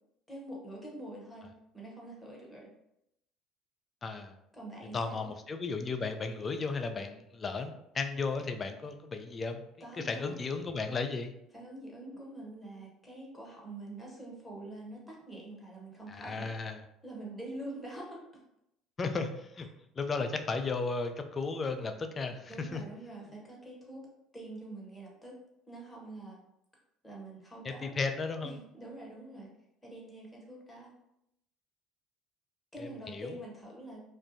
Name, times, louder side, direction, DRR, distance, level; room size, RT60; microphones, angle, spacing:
voice 1, 0.3-1.5 1.7-2.7 4.5-5.2 9.8-10.4 11.5-16.5 17.0-18.2 22.5-24.1 24.3-25.4 25.7-26.4 27.0-28.0 28.4-29.5 29.8-30.9 32.7-34.0, right 1 dB, 10° left, -3 dB, 0.9 m, -45 dB
voice 2, 4.0-4.3 4.9-9.6 9.9-11.3 16.1-16.8 19.0-19.7 20.0-22.8 27.6-28.6 32.8-33.4, left 4 dB, 35° left, 6 dB, 0.3 m, -35 dB
2.4 x 2.1 x 2.6 m, 0.80 s
hypercardioid pair, 65°, 0 cm